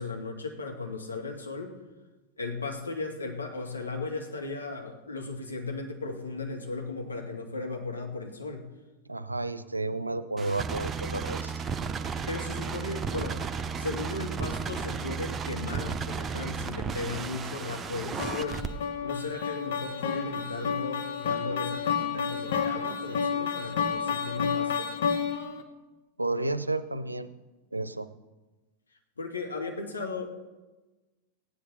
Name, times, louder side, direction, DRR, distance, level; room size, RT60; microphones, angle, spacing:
voice 1, 0.0-1.8 2.4-8.7 12.3-13.4 13.8-18.6 19.0-24.9 29.2-30.3, left 3 dB, 75° left, 2 dB, 1.8 m, -36 dB
voice 2, 9.1-11.5 26.2-27.3 27.7-28.1, right 2 dB, 85° right, 13 dB, 0.6 m, -31 dB
low hum chaos machine, 10.4-18.7, right 5 dB, 20° right, 0.8 m, -34 dB
sound 1, 18.2-25.6, left 6 dB, 55° left, 1.2 m, -30 dB
16.5 x 10.0 x 4.1 m, 1.2 s
figure-of-eight pair, 90°, 0 cm